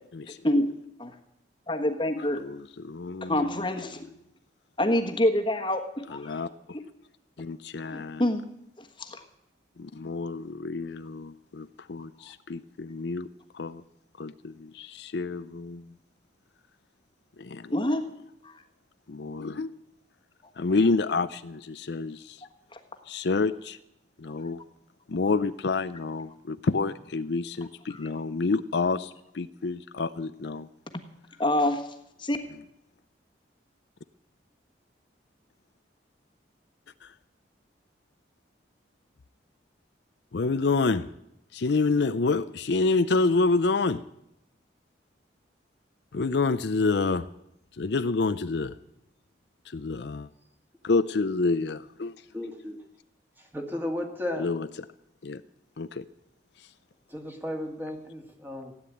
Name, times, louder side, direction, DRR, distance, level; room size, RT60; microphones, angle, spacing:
voice 1, 0.3-0.7 1.0-1.1 1.7-2.4 3.3-4.0 4.8-5.8 6.1-6.4 6.7-6.8 7.9-8.4 8.8-9.2 17.7-18.1 18.4-18.5 22.7-22.8 27.9-28.0 31.4-31.8 32.2-32.4, left 1 dB, 25° left, 5 dB, 1.4 m, -26 dB
voice 2, 2.4-3.6 6.1-6.8 7.4-8.2 9.8-13.3 13.5-13.8 14.2-15.9 17.4-17.7 19.1-19.7 20.6-22.4 23.1-23.8 24.2-24.6 25.1-30.7 37.0-37.1 40.3-41.1 41.5-44.0 46.1-47.3 47.7-48.8 49.7-50.3 50.8-52.2 54.4-54.7 55.2-55.4 55.8-56.0 56.6-56.7, left 3 dB, 65° left, 12 dB, 0.5 m, -28 dB
voice 3, 52.3-52.8 53.4-54.5 57.1-58.7, left 1 dB, 10° right, 3 dB, 2.0 m, -34 dB
16.0 x 9.7 x 8.5 m, 0.81 s
head